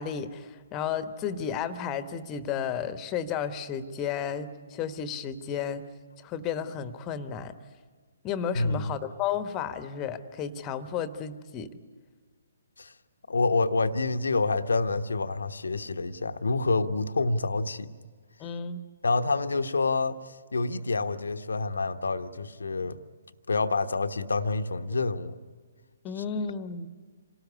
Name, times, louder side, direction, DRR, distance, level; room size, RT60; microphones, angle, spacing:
voice 1, 0.0-5.8 6.2-7.5 8.2-11.7 18.4-18.8 26.0-26.9, left 7 dB, 20° left, 11 dB, 1.2 m, -33 dB
voice 2, 8.5-8.9 12.8-12.9 13.3-17.9 19.0-20.2 20.5-23.0 23.5-25.4 26.2-26.3, left 3 dB, 70° left, 9 dB, 1.1 m, -27 dB
27.0 x 19.0 x 9.8 m, 1.5 s
figure-of-eight pair, 130°, 0 cm